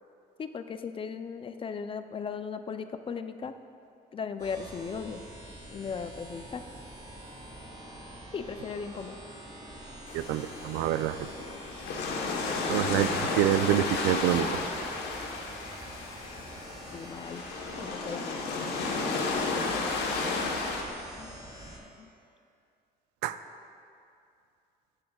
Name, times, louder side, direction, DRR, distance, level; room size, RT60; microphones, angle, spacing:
voice 1, 0.4-3.5 4.1-5.2 5.7-6.6 8.3-9.2 16.9-17.4 17.8-18.5 20.2-20.6 21.2-21.4, left 6 dB, 30° left, 9 dB, 0.5 m, -37 dB
sound 1, 4.4-21.8, right 1 dB, 25° right, 2.3 m, -46 dB
sound 2, 10.1-20.8, left 3 dB, 80° left, 1.2 m, -33 dB
voice 2, 10.1-11.3 12.7-14.5 23.2-23.4, right 13 dB, 90° right, 12 dB, 0.4 m, -27 dB
19.5 x 7.6 x 2.3 m, 2.5 s
cardioid pair, 110°, 17 cm